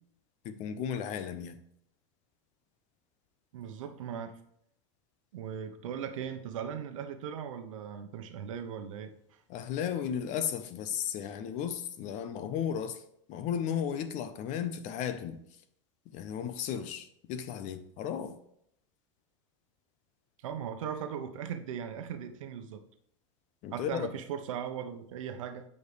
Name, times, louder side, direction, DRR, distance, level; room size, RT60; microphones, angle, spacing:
voice 1, 0.4-1.6 9.5-13.0 13.3-15.4 16.1-18.4 23.6-24.1, left 8 dB, 50° left, 0.9 m, -34 dB
voice 2, 3.5-4.4 5.3-9.1 20.4-22.8 23.7-25.7, right 8 dB, 80° right, 1.0 m, -38 dB
8.9 x 5.4 x 3.3 m
supercardioid pair, 115°, 16 cm